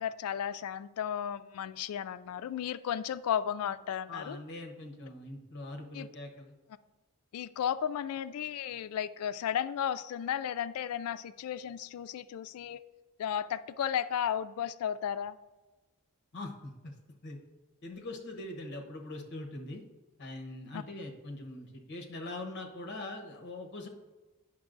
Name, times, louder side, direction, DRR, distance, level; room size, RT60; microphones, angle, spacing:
voice 1, 0.0-4.4 5.9-6.1 7.3-12.8 13.2-15.4 20.7-20.8, left 9 dB, 70° left, 15 dB, 0.3 m, -34 dB
voice 2, 4.1-6.5 16.3-16.9 17.2-17.4 17.8-19.8 20.2-23.9, left 2 dB, 50° left, 2 dB, 0.9 m, -42 dB
9.3 x 6.1 x 2.5 m, 1.2 s
head